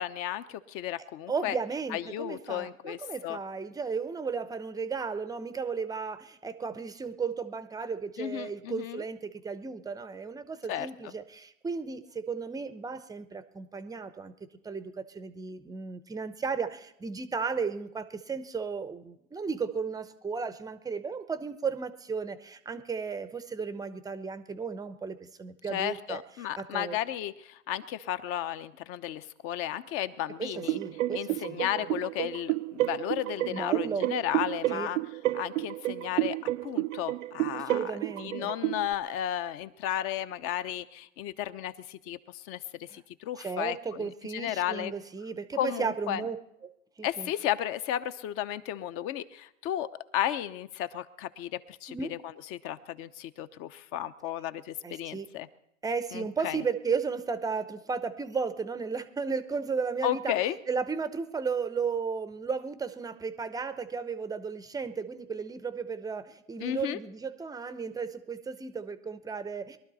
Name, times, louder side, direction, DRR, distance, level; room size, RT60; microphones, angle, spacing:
voice 1, 0.0-1.6 1.9-3.4 8.2-9.0 10.7-11.1 25.7-30.8 31.1-35.0 35.3-37.9 38.2-44.9 45.6-46.2 47.0-49.9 50.1-52.2 52.5-55.5 56.1-56.6 60.0-60.6 66.6-67.0, left 11 dB, 35° left, 13 dB, 0.8 m, -34 dB
voice 2, 1.3-14.3 14.6-26.2 26.6-27.0 30.4-31.6 33.5-34.1 34.7-34.9 37.5-38.5 42.9-43.0 43.4-46.4 46.6-46.7 47.0-47.3 51.9-52.1 54.8-55.3 55.8-60.3 60.7-69.8, right 5 dB, 10° right, 12 dB, 0.7 m, -34 dB
sound 1, 30.6-38.9, right 17 dB, 65° right, 0.6 m, -31 dB
22.0 x 12.5 x 4.1 m, 0.79 s
hypercardioid pair, 125°, 41 cm